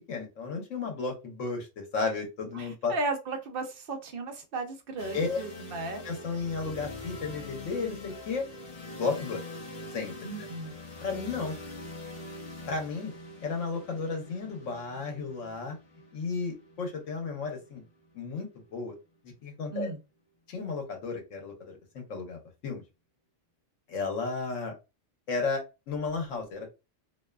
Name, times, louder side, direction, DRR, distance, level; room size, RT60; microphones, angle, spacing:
voice 1, 0.1-2.9 5.1-5.4 6.0-8.4 8.9-9.4 9.9-10.1 11.0-11.6 12.7-13.1 13.4-15.8 16.1-17.8 18.1-18.9 19.4-19.9 20.5-22.8 23.9-24.7 25.3-26.7, left 4 dB, 80° left, 1.2 m, -33 dB
voice 2, 2.5-6.0 10.2-10.8 19.7-20.0, right 3 dB, 60° right, 0.6 m, -35 dB
sound 1, 5.0-18.8, left 1 dB, 35° left, 0.7 m, -44 dB
2.6 x 2.3 x 2.2 m
omnidirectional pair, 1.3 m